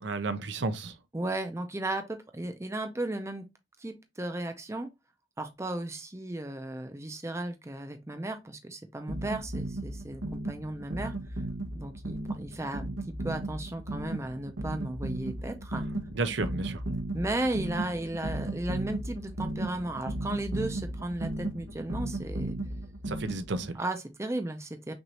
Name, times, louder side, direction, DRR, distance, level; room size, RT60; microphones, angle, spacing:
voice 1, 0.0-1.0 16.1-16.8 23.1-23.8, right 3 dB, 60° right, 0.6 m, -32 dB
voice 2, 1.1-3.5 3.8-4.9 5.4-11.1 11.7-15.9 17.1-22.5 23.7-24.9, right 1 dB, 15° right, 0.6 m, -35 dB
sound 1, 9.1-23.7, right 1 dB, 85° right, 1.1 m, -35 dB
6.1 x 2.6 x 2.9 m
head